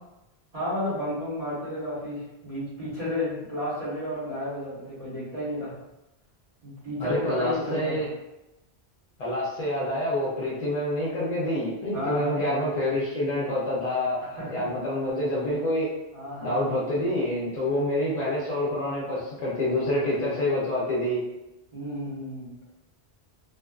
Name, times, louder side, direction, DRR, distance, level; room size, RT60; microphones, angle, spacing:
voice 1, 0.5-5.8 6.6-8.1 11.9-12.4 14.4-14.7 16.1-17.0 20.0-20.7 21.7-22.5, left 1 dB, 35° right, -9 dB, 1.1 m, -32 dB
voice 2, 7.0-8.1 9.2-15.9 16.4-21.3, left 1 dB, 50° left, -6 dB, 0.5 m, -27 dB
2.4 x 2.3 x 2.2 m, 0.94 s
omnidirectional pair, 1.1 m